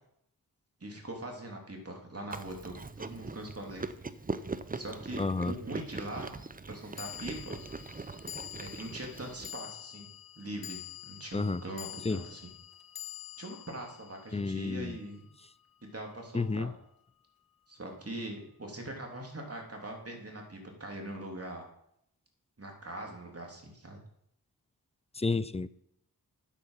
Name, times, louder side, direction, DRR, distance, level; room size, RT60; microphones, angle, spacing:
voice 1, 0.8-3.8 4.7-6.3 6.7-7.6 8.6-10.1 10.4-12.5 13.4-15.2 15.8-16.7 17.7-21.6 22.6-24.0, right 1 dB, 40° right, 1 dB, 3.2 m, -42 dB
Chewing mastication, 2.3-9.5, right 3 dB, 25° right, 0.7 m, -41 dB
sound 1, 4.9-5.0 7.0-15.4, left 13 dB, 70° left, 0.7 m, -47 dB
voice 2, 5.2-5.5 11.3-11.6 12.1-12.2 14.3-15.0 16.3-16.7 25.2-25.7, left 3 dB, 15° left, 17 dB, 0.5 m, -30 dB
9.3 x 8.4 x 5.7 m, 0.75 s
cardioid pair, 45°, 37 cm